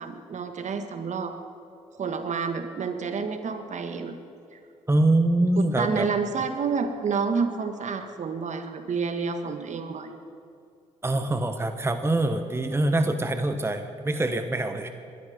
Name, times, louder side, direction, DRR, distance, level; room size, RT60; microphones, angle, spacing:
voice 1, 0.0-1.3 2.0-4.2 4.5-4.6 5.6-10.1, right 5 dB, 50° right, 7 dB, 1.6 m, -29 dB
voice 2, 4.9-6.1 11.0-14.9, right 2 dB, 15° right, 8 dB, 1.2 m, -24 dB
21.0 x 13.0 x 5.2 m, 2.4 s
supercardioid pair, 60°, 15 cm